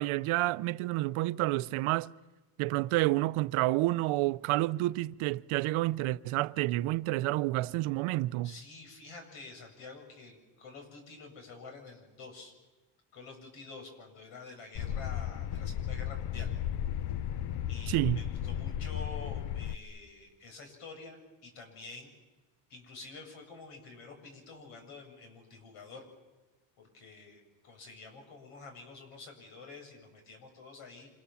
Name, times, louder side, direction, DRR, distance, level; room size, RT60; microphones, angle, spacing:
voice 1, 0.0-2.1 2.6-8.5 17.9-18.2, right 18 dB, 80° right, 0.8 m, -29 dB
voice 2, 8.4-12.5 13.1-16.5 17.7-22.1 22.7-26.0 26.8-31.1, left 3 dB, 80° left, 8.0 m, -48 dB
sound 1, 14.7-19.8, left 10 dB, 55° left, 0.9 m, -35 dB
28.0 x 27.5 x 7.2 m
cardioid pair, 120°, 48 cm